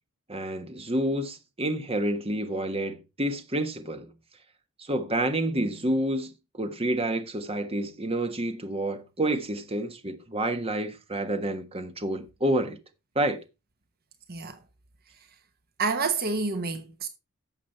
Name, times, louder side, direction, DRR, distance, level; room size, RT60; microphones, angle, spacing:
voice 1, 0.3-4.1 4.8-12.8 13.1-13.4, right 1 dB, 25° right, 1.4 m, -29 dB
voice 2, 15.8-17.1, right 4 dB, 45° right, 1.1 m, -28 dB
12.0 x 7.4 x 4.4 m
head